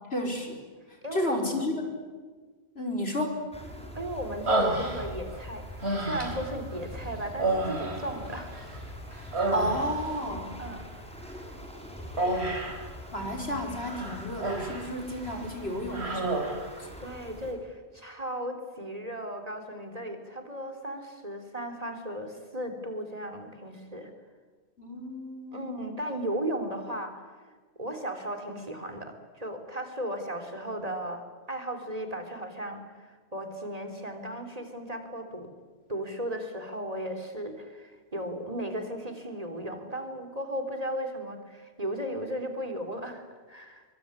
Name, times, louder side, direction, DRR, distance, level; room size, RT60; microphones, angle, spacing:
voice 1, 0.1-0.6 1.1-1.9 2.8-3.4 9.5-10.6 13.1-16.4 16.8-16.9 24.8-25.9, left 1 dB, 70° left, 2 dB, 5.2 m, -32 dB
voice 2, 1.0-1.3 1.7-1.9 4.0-9.0 10.6-10.9 17.0-24.1 25.5-27.3 27.8-35.5 35.9-43.8, right 1 dB, 35° right, 6 dB, 3.7 m, -36 dB
sound 1, 3.5-17.5, left 1 dB, 5° left, 8.0 m, -43 dB
Human voice, 4.5-5.4 5.8-6.6 7.3-8.8 9.1-10.2 12.2-12.9 13.9-14.9 15.3-15.5 15.9-16.7, right 2 dB, 90° right, 4.5 m, -30 dB
24.5 x 24.0 x 9.8 m, 1.4 s
omnidirectional pair, 1.1 m